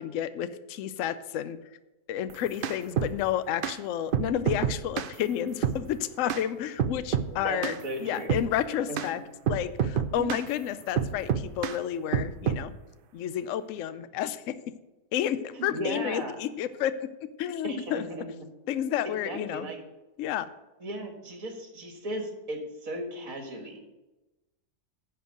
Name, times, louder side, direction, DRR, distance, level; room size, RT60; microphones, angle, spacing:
voice 1, 0.0-1.6 2.1-7.7 8.0-9.2 9.5-12.7 13.1-14.5 15.1-16.9 17.4-18.0 18.7-19.7 20.2-20.5, left 10 dB, 65° left, 13 dB, 0.9 m, -31 dB
sound 1, 2.3-3.1 3.6-3.8 4.1-5.1 5.6-5.8 6.3-6.4 6.8-7.3 7.6-7.8 8.3-8.5 9.0-9.1 9.5-10.5 11.0-11.8 12.1-12.6, right 8 dB, 80° right, 0.4 m, -28 dB
voice 2, 7.3-8.4 8.9-9.0 10.2-10.4 15.5-16.4 17.6-18.3 18.8-19.8 20.8-23.8, right 1 dB, 65° right, 3 dB, 2.3 m, -36 dB
10.5 x 4.6 x 7.7 m, 1.0 s
omnidirectional pair, 1.6 m